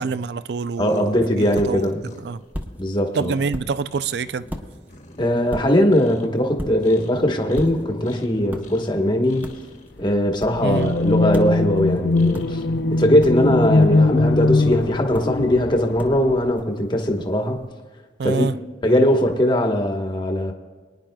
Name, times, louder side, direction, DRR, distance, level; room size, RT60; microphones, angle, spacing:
voice 1, 0.0-1.9 2.2-2.4 3.1-4.5 10.6-11.0 18.2-18.5, right 5 dB, 65° right, 0.4 m, -26 dB
sound 1, 0.7-13.6, equal, 45° left, 1.3 m, -42 dB
voice 2, 0.8-2.1 2.8-3.4 5.2-9.5 10.0-12.6 12.9-17.6 18.2-18.5 18.8-20.5, left 1 dB, 25° left, 1.2 m, -20 dB
sound 2, 0.9-17.7, equal, 10° right, 0.9 m, -40 dB
sound 3, 10.5-16.5, left 2 dB, 70° left, 0.5 m, -21 dB
23.0 x 10.5 x 2.3 m
head